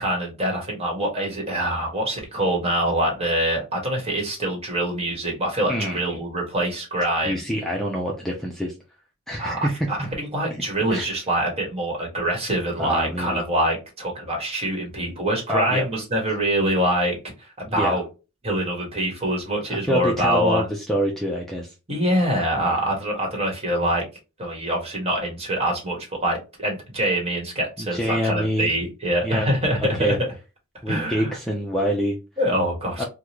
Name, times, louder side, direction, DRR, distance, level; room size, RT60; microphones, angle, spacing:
voice 1, 0.0-7.4 9.4-17.2 17.7-18.0 18.4-20.6 21.9-24.0 24.4-30.2 30.9-31.3 32.4-33.1, right 1 dB, 30° right, 0 dB, 1.5 m, -24 dB
voice 2, 5.7-6.0 7.2-8.8 9.3-9.9 10.9-11.1 12.8-13.4 15.5-15.9 17.7-18.0 19.7-21.7 22.6-22.8 27.8-28.8 29.2-29.5 29.8-30.2 30.8-32.2 33.0-33.1, equal, ahead, -2 dB, 0.5 m, -26 dB
3.6 x 2.3 x 2.9 m, 0.29 s
head